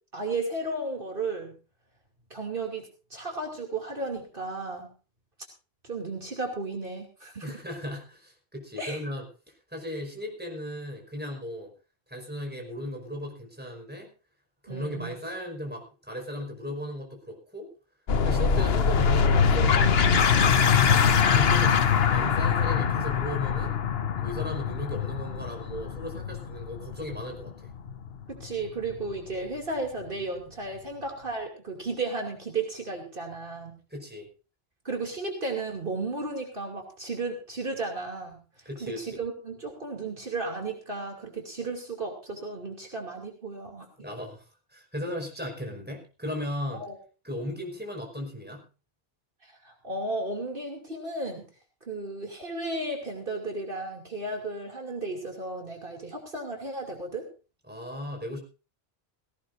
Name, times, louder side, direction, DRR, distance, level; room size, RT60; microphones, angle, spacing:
voice 1, 0.1-1.5 2.3-4.9 5.8-7.5 8.8-9.0 14.7-15.1 28.3-33.8 34.8-38.4 38.8-43.9 46.7-47.0 49.4-51.4 51.8-57.3, right 3 dB, 55° right, 2 dB, 2.9 m, -34 dB
voice 2, 7.4-9.2 9.7-11.7 12.1-14.1 14.6-17.7 18.2-20.6 21.1-23.7 24.2-27.7 33.9-34.3 38.6-39.0 44.0-46.8 47.2-48.6 57.7-58.4, equal, 10° right, 0 dB, 5.1 m, -36 dB
sound 1, 18.1-29.2, left 6 dB, 70° left, 1.2 m, -23 dB
18.0 x 17.5 x 2.7 m, 0.34 s
omnidirectional pair, 1.1 m